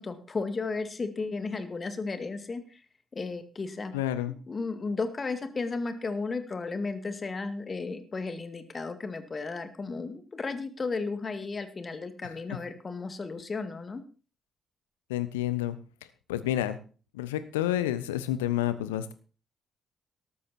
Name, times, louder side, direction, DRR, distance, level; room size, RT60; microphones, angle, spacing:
voice 1, 0.0-2.8 3.1-3.9 4.5-14.0, left 4 dB, 35° left, 10 dB, 2.2 m, -34 dB
voice 2, 3.9-4.4 12.2-12.3 15.1-15.8 16.3-16.8 17.1-19.1, left 12 dB, 80° left, 14 dB, 0.9 m, -29 dB
13.0 x 13.0 x 4.3 m, 0.37 s
figure-of-eight pair, 40°, 0 cm